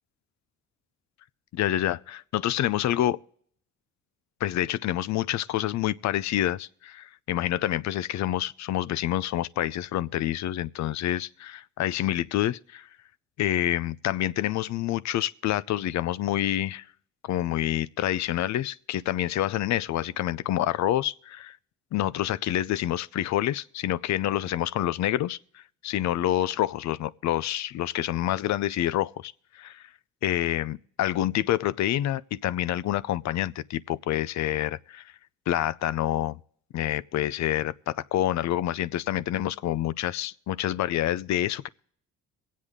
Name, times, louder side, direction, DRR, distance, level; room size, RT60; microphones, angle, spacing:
voice 1, 1.5-3.2 4.4-12.9 13.4-16.9 17.2-21.6 21.9-29.8 30.2-35.0 35.5-36.4 36.7-41.7, left 13 dB, 65° left, 0.5 m, -27 dB
23.0 x 8.4 x 3.6 m
cardioid pair, 90°, 30 cm